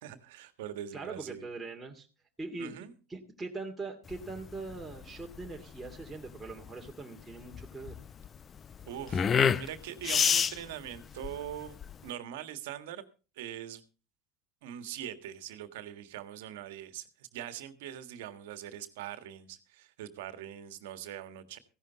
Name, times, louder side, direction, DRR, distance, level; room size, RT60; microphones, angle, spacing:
voice 1, 0.0-1.4 2.6-2.9 8.8-11.8 12.0-13.0 13.3-13.8 14.6-21.6, right 11 dB, 65° right, 10 dB, 1.6 m, -42 dB
voice 2, 0.9-2.1 2.4-7.9, right 3 dB, 10° right, 0 dB, 2.4 m, -42 dB
sound 1, 4.1-12.1, left 7 dB, 30° left, 0.5 m, -30 dB
16.0 x 11.0 x 4.1 m, 0.36 s
figure-of-eight pair, 75°, 0 cm